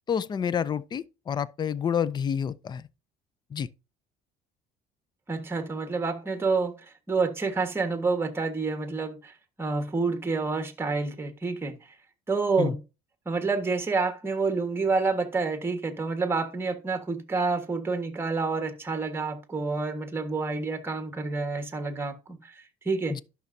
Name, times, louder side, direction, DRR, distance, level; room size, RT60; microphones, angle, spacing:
voice 1, 0.1-2.9 3.5-3.7 12.6-12.7 23.1-23.2, left 8 dB, 25° left, 0.4 m, -29 dB
voice 2, 5.3-6.8 7.1-9.3 9.6-11.7 12.3-12.8 13.2-23.2, right 4 dB, 15° right, 1.4 m, -28 dB
11.5 x 6.0 x 2.7 m
cardioid pair, 125°, 17 cm